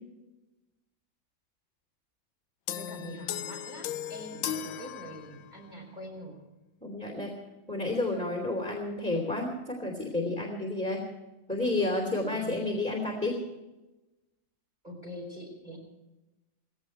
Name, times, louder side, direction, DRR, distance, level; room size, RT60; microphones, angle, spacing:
sound 1, 2.7-5.7, left 10 dB, 80° left, 1.5 m, -37 dB
voice 1, 2.7-6.4 12.3-12.6 14.8-15.8, equal, 25° right, -2 dB, 4.6 m, -44 dB
voice 2, 6.8-7.4 7.7-11.1 11.5-13.4, left 2 dB, 5° left, 1 dB, 3.1 m, -31 dB
18.5 x 17.0 x 4.6 m, 1.0 s
omnidirectional pair, 2.1 m